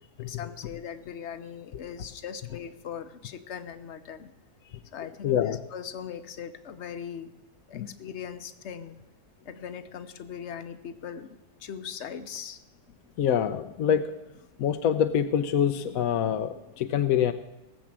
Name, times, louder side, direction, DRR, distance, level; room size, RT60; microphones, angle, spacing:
voice 1, 0.2-4.3 4.6-7.3 7.7-8.9 9.4-12.6, left 7 dB, 55° left, 11 dB, 1.0 m, -40 dB
voice 2, 5.2-5.6 7.7-7.9 13.2-14.1 14.6-17.3, left 9 dB, 70° left, 9 dB, 1.0 m, -25 dB
18.0 x 7.3 x 7.4 m, 0.99 s
omnidirectional pair, 1.7 m